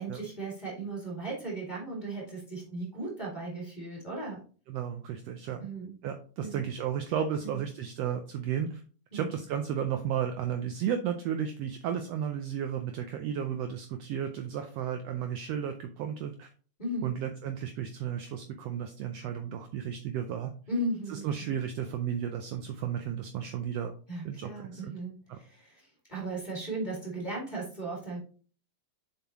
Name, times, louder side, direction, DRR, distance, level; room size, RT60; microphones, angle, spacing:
voice 1, 0.0-4.4 5.6-5.9 6.4-6.6 7.4-7.6 9.1-9.3 16.8-17.1 20.7-21.3 24.1-28.2, right 2 dB, 15° left, -3 dB, 2.1 m, -36 dB
voice 2, 4.7-5.7 6.0-8.8 9.1-16.5 17.0-20.5 21.1-23.9 24.2-24.9 25.3-25.4, right 9 dB, 75° right, 6 dB, 1.5 m, -33 dB
7.0 x 5.7 x 2.9 m, 0.40 s
omnidirectional pair, 3.3 m